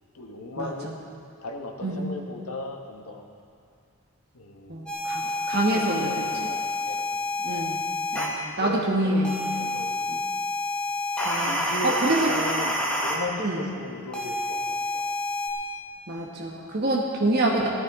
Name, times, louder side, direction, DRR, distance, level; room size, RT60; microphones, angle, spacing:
voice 1, 0.1-0.9 1.4-3.2 4.3-4.9 5.2-7.0 7.5-7.7 8.6-9.2 9.6-10.1 11.4-15.1, left 2 dB, 85° left, 2 dB, 1.4 m, -37 dB
voice 2, 4.7-6.1 7.4-7.8 8.1-9.4 10.1-10.2 11.2-11.5 11.8-12.3 13.4-13.6 16.1-17.7, right 1 dB, 45° right, -2 dB, 1.2 m, -26 dB
sound 1, 4.9-8.2 9.2-13.1 14.1-15.5, left 1 dB, 5° left, 1.4 m, -28 dB
17.0 x 14.0 x 3.7 m, 2.4 s
head